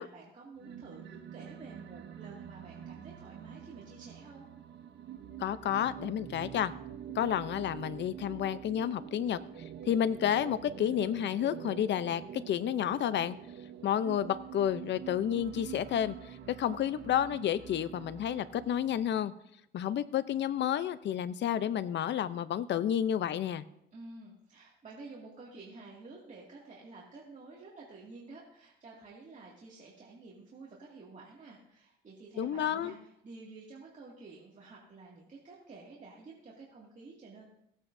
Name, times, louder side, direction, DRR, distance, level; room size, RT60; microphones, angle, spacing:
voice 1, 0.0-4.5 23.9-37.4, right 3 dB, 40° right, -5 dB, 2.3 m, -50 dB
sound 1, 0.6-19.2, right 9 dB, 60° right, 1.0 m, -46 dB
voice 2, 5.4-6.7 7.1-9.4 9.9-13.4 13.8-19.3 19.7-23.6 32.4-32.9, left 10 dB, 65° left, 14 dB, 0.7 m, -31 dB
18.0 x 8.8 x 2.7 m, 0.79 s
cardioid pair, 90°, 20 cm